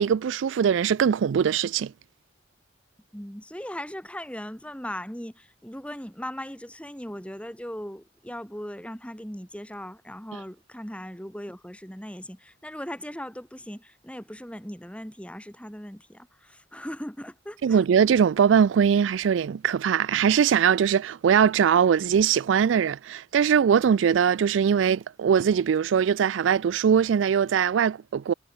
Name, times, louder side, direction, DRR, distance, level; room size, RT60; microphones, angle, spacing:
voice 1, 0.0-1.9 17.6-28.3, right 7 dB, 90° right, 0.4 m, -21 dB
voice 2, 3.1-17.8, equal, 5° left, 6.9 m, -38 dB
head